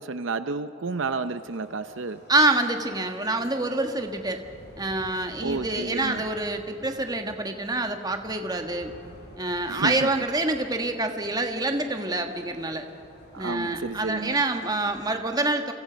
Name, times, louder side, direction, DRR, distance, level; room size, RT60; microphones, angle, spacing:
voice 1, 0.0-2.2 5.4-6.2 9.7-10.1 13.3-14.4, right 3 dB, 65° right, 11 dB, 0.6 m, -31 dB
sound 1, 0.9-15.1, equal, 50° left, 5.6 m, -50 dB
voice 2, 2.3-4.4 4.8-8.9 9.4-12.9 13.4-15.7, right 2 dB, 20° right, 5 dB, 1.5 m, -26 dB
29.5 x 25.0 x 5.2 m, 2.8 s
head